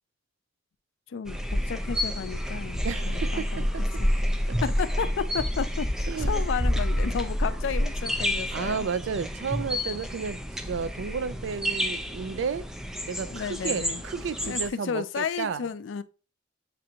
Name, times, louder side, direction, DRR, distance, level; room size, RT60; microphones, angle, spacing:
voice 1, 1.1-3.7 4.0-8.9 13.3-14.0 14.4-16.0, left 6 dB, 80° left, 0.4 m, -33 dB
sound 1, 1.3-14.7, equal, 5° right, 0.4 m, -29 dB
voice 2, 2.8-3.8 4.5-4.6 6.1-6.4 8.5-12.7 13.1-15.6, right 6 dB, 80° right, 0.4 m, -32 dB
7.5 x 2.6 x 2.7 m
head